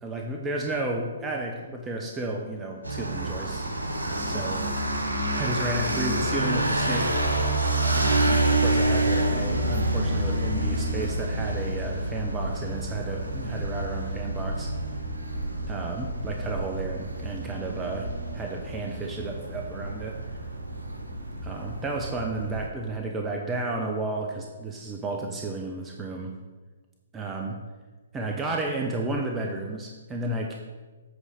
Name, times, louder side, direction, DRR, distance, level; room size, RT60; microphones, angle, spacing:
voice 1, 0.0-3.7 4.2-4.6 5.4-7.2 7.9-14.7 15.7-18.1 18.3-20.2 21.4-26.3 27.1-27.6 28.1-30.6, right 2 dB, 15° right, 1 dB, 0.9 m, -32 dB
sound 1, 2.8-22.7, right 2 dB, 80° right, 1.3 m, -28 dB
sound 2, 9.1-15.9, left 1 dB, 90° left, 0.6 m, -34 dB
8.1 x 4.9 x 7.1 m, 1.3 s
figure-of-eight pair, 125°, 0 cm